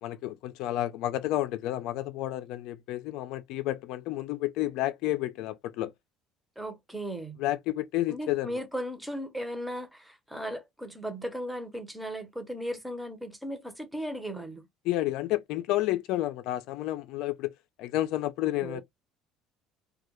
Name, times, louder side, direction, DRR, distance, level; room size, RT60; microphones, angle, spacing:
voice 1, 0.0-5.9 7.4-8.6 14.9-17.5 17.8-18.8, left 15 dB, 75° left, 0.3 m, -30 dB
voice 2, 6.6-7.4 8.1-14.7 18.6-18.8, equal, 5° right, 0.7 m, -36 dB
2.2 x 2.1 x 2.9 m
supercardioid pair, 95°, 0 cm